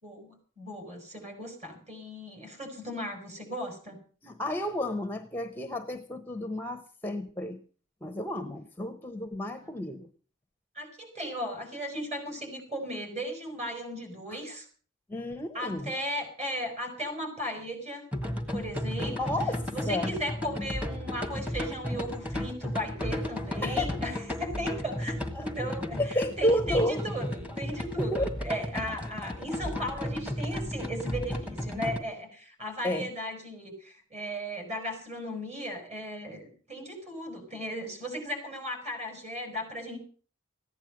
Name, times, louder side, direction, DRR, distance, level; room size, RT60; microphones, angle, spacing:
voice 1, 0.0-4.0 10.7-14.7 15.5-18.1 18.5-19.3 19.7-40.0, equal, 30° right, 3 dB, 5.9 m, -36 dB
voice 2, 4.2-7.6 8.0-10.1 15.1-15.9 19.2-20.1 23.6-23.9 25.3-25.7 26.0-27.0 28.0-28.3 32.8-33.1, left 1 dB, 10° left, 7 dB, 0.8 m, -31 dB
sound 1, 18.1-32.0, left 1 dB, 5° right, 1.5 m, -34 dB
15.5 x 10.0 x 7.8 m, 0.42 s
head